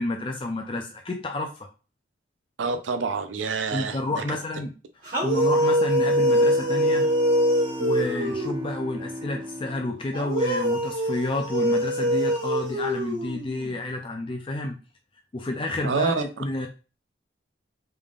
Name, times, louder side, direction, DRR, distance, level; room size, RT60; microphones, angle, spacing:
voice 1, 0.0-1.7 3.7-4.7 5.2-7.1 7.8-14.8 15.3-16.7, left 2 dB, 30° left, 3 dB, 0.4 m, -30 dB
voice 2, 2.6-4.4 15.8-16.4, right 4 dB, 85° right, 8 dB, 0.5 m, -28 dB
sound 1, 5.0-8.8 10.1-13.7, equal, 45° right, 1.8 m, -24 dB
Bowed string instrument, 6.0-11.2, equal, 25° right, 0.5 m, -37 dB
3.6 x 3.4 x 2.4 m, 0.33 s
head